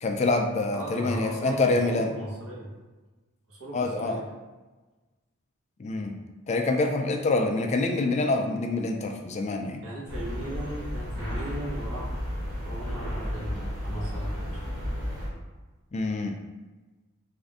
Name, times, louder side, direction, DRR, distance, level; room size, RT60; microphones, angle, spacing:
voice 1, 0.0-2.1 3.7-4.2 5.8-6.2 6.5-9.8 15.9-16.4, left 2 dB, 30° left, 3 dB, 0.3 m, -26 dB
voice 2, 0.7-2.7 3.5-4.2 9.8-12.0 12.5-14.7, right 1 dB, 75° right, -5 dB, 1.2 m, -37 dB
sound 1, 10.1-15.3, equal, 20° right, 1.5 m, -33 dB
3.5 x 2.5 x 3.5 m, 1.2 s
head